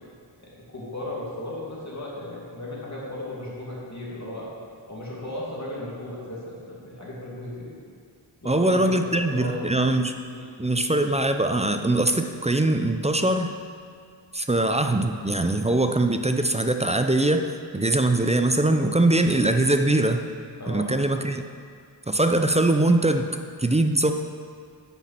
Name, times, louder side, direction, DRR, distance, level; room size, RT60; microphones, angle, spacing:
voice 1, 0.7-4.5 4.9-7.7 8.4-9.6 10.3-10.5 20.6-20.9, left 1 dB, 40° left, -5 dB, 2.5 m, -35 dB
voice 2, 8.4-10.1 10.6-13.5 14.3-20.3 20.7-21.4 22.1-23.3 23.6-24.1, right 2 dB, 15° right, 6 dB, 0.4 m, -22 dB
9.0 x 5.9 x 5.8 m, 2.1 s
wide cardioid pair, 70°, 45 cm